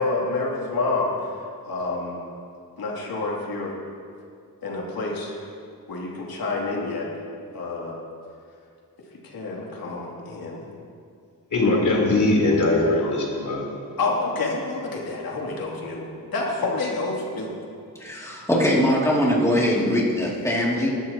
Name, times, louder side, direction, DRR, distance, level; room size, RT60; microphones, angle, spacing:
voice 1, 0.0-1.3 1.7-2.2 2.8-3.8 4.6-5.4 5.9-7.1 7.5-8.0 9.2-10.6 14.0-17.6, left 3 dB, 80° left, -3 dB, 3.1 m, -28 dB
voice 2, 11.5-13.6, left 2 dB, 55° left, -3 dB, 3.8 m, -20 dB
voice 3, 18.0-20.9, equal, 10° left, -5 dB, 2.7 m, -21 dB
21.0 x 13.0 x 3.0 m, 2.4 s
wide cardioid pair, 120°, 36 cm